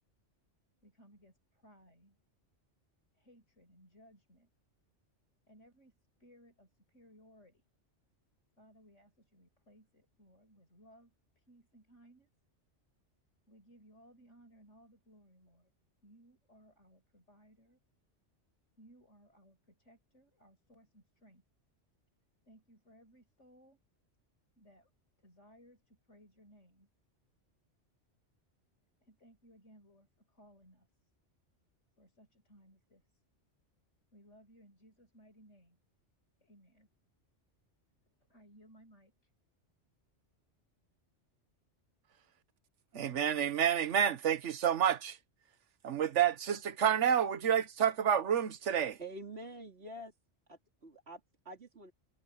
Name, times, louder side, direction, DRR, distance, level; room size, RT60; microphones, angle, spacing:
voice 1, 0.8-2.2 3.1-4.5 5.5-7.6 8.6-12.3 13.5-15.7 16.0-17.8 18.8-21.4 22.4-23.8 24.6-24.9 25.2-26.9 29.0-30.9 32.0-33.0 34.1-35.8 36.4-36.9 38.2-39.1, equal, 90° left, 8.0 m, -62 dB
voice 2, 42.9-45.2 45.8-49.0, right 9 dB, 80° right, 1.3 m, -29 dB
voice 3, 49.0-50.1 50.5-51.9, right 1 dB, 60° right, 3.3 m, -47 dB
omnidirectional pair, 1.2 m